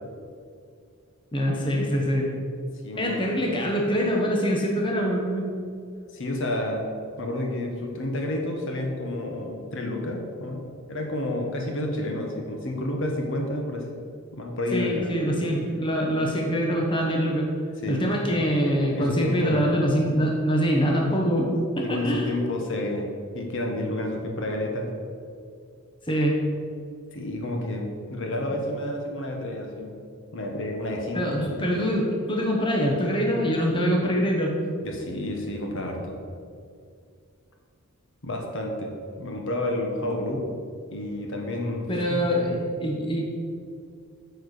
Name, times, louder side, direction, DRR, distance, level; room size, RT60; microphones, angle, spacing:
voice 1, 1.3-2.3 3.0-5.5 14.7-17.4 17.9-21.5 21.7-22.3 26.1-26.4 28.5-28.6 31.1-34.5 41.9-43.3, equal, 20° left, -1 dB, 1.1 m, -24 dB
voice 2, 2.8-3.3 6.1-13.9 14.3-15.1 17.8-18.0 18.9-19.7 21.8-24.9 27.1-30.0 30.3-31.4 34.8-36.2 38.2-40.5 40.9-42.7, left 1 dB, 60° left, 1 dB, 1.3 m, -30 dB
8.9 x 4.7 x 6.6 m, 2.3 s
head